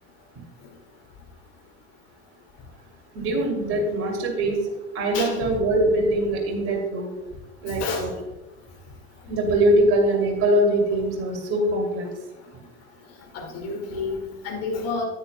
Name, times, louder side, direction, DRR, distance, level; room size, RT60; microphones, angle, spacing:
voice 1, 3.1-4.6 4.9-7.1 7.6-8.1 9.3-12.1, right 1 dB, 40° right, 1 dB, 2.8 m, -22 dB
voice 2, 5.1-5.5 7.7-8.1 13.3-15.0, left 4 dB, 50° left, 1 dB, 2.2 m, -30 dB
9.8 x 9.8 x 2.2 m, 1.1 s
hypercardioid pair, 80°, 33 cm